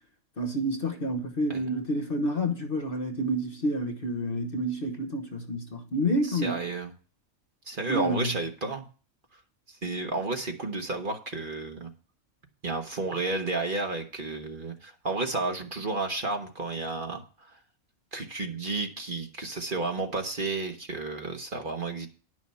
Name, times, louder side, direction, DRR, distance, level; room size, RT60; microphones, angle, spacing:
voice 1, 0.4-6.6 7.9-8.3, equal, 45° left, 1.3 m, -29 dB
voice 2, 1.5-1.9 6.3-6.9 7.7-8.9 9.8-11.9 12.6-17.2 18.1-22.1, right 3 dB, 40° right, 1.4 m, -32 dB
11.0 x 6.3 x 5.6 m
omnidirectional pair, 1.4 m